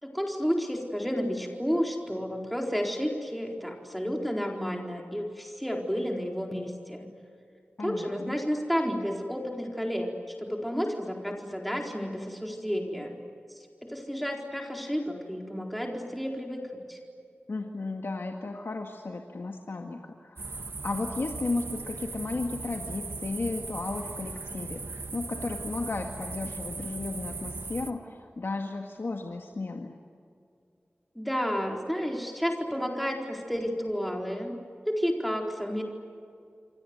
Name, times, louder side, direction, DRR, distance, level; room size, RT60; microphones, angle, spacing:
voice 1, 0.0-7.1 7.8-10.1 10.4-13.2 13.5-17.0 31.2-34.6 34.9-35.8, equal, ahead, 1 dB, 4.3 m, -31 dB
voice 2, 7.8-8.4 17.5-30.0, left 3 dB, 70° left, 3 dB, 2.0 m, -34 dB
sound 1, 20.4-27.9, right 3 dB, 70° right, 1.7 m, -38 dB
29.0 x 25.0 x 8.0 m, 2.4 s
wide cardioid pair, 55°, 4 cm